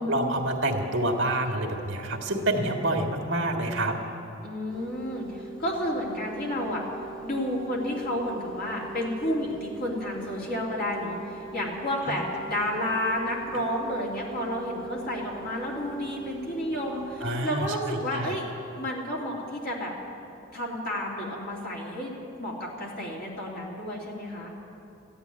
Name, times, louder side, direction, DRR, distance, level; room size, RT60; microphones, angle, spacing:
voice 1, 0.1-4.0 17.2-18.4, right 1 dB, 65° right, 2 dB, 1.8 m, -27 dB
voice 2, 4.4-6.8 7.2-18.5 18.8-19.9 20.5-22.1 22.4-24.5, left 1 dB, 45° left, -3 dB, 3.0 m, -31 dB
sound 1, 4.7-17.3, right 5 dB, 5° left, 2.2 m, -43 dB
14.5 x 10.0 x 9.6 m, 2.7 s
head